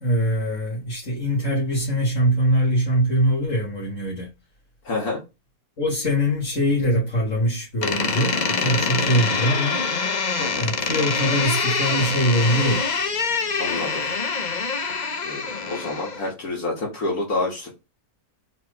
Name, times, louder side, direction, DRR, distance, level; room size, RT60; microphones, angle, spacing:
voice 1, 0.0-4.3 5.8-9.8 10.6-12.8, equal, 60° left, 2.2 m, -22 dB
voice 2, 4.8-5.2 10.4-10.7 13.6-14.0 15.2-17.7, left 2 dB, 90° left, 2.4 m, -28 dB
Door, 7.8-16.3, left 4 dB, 40° left, 0.8 m, -25 dB
4.5 x 4.4 x 4.9 m
omnidirectional pair, 1.5 m